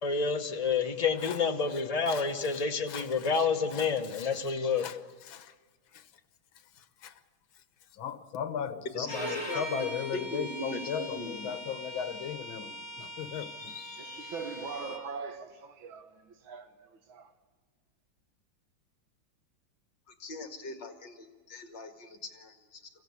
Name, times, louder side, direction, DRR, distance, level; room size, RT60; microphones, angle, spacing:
voice 1, 0.0-4.9, left 5 dB, 25° left, 0.8 m, -29 dB
voice 2, 2.1-2.6 2.9-3.3 3.7-4.3 4.8-5.0 5.3-5.6 5.9-6.1 6.6-7.2 7.5-7.6 7.9-14.3, left 8 dB, 80° left, 1.8 m, -38 dB
voice 3, 9.0-9.8 10.1-11.5 20.1-22.9, left 1 dB, 60° left, 2.6 m, -41 dB
Bowed string instrument, 9.1-15.0, equal, 10° right, 4.5 m, -41 dB
voice 4, 14.0-17.3, right 5 dB, 80° right, 2.0 m, -42 dB
23.5 x 15.5 x 8.3 m
omnidirectional pair, 2.2 m